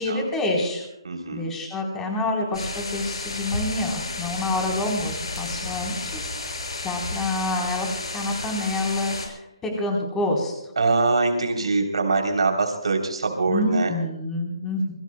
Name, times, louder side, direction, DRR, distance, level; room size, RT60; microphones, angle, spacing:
voice 1, 0.0-0.9 1.3-6.3 6.8-10.5 13.5-14.9, left 2 dB, 10° left, 0 dB, 3.7 m, -27 dB
voice 2, 1.0-1.5 10.8-13.9, right 3 dB, 80° right, 3 dB, 3.3 m, -23 dB
sound 1, 2.5-9.3, left 2 dB, 85° left, 5.7 m, -32 dB
25.5 x 22.0 x 2.2 m, 0.83 s
hypercardioid pair, 165°, 3 cm